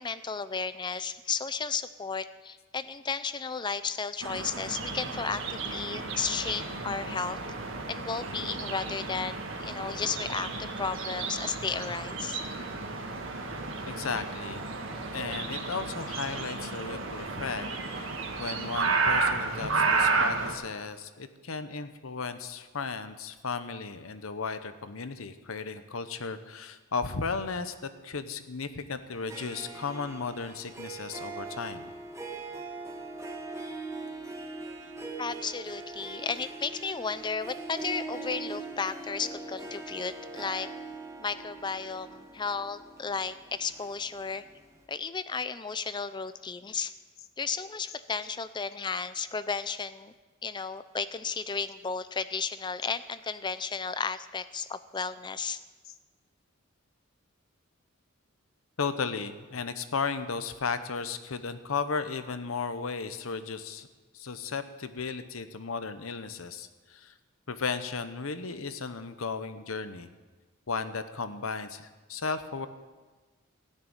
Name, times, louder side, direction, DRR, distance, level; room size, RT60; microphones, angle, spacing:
voice 1, 0.0-7.4 7.9-12.4 35.2-40.7 41.2-44.4 44.9-46.9 47.4-50.1 50.4-55.6, left 5 dB, 20° left, 14 dB, 0.5 m, -34 dB
sound 1, 4.2-20.5, right 4 dB, 65° right, 1.8 m, -32 dB
voice 2, 13.8-14.7 15.1-17.7 17.9-18.1 18.4-31.9 58.8-63.9 64.1-67.1 67.5-70.1 70.7-72.7, left 5 dB, 80° left, 11 dB, 0.9 m, -35 dB
Harp, 29.1-44.5, right 3 dB, 15° right, 1.4 m, -41 dB
16.0 x 6.7 x 9.0 m, 1.3 s
head